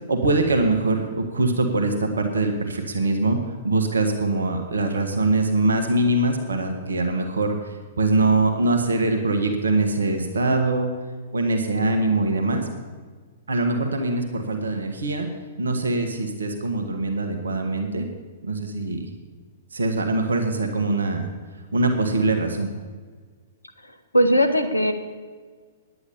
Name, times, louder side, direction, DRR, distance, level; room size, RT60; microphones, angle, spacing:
voice 1, 0.1-3.4 3.6-7.6 8.0-10.9 11.3-12.7 13.5-15.3 15.6-18.0 18.4-19.1 19.7-21.3 21.7-22.7, right 2 dB, 75° right, 4 dB, 1.4 m, -23 dB
voice 2, 24.1-24.9, equal, 90° left, 7 dB, 1.3 m, -18 dB
10.0 x 9.6 x 7.0 m, 1.5 s
figure-of-eight pair, 110°, 0 cm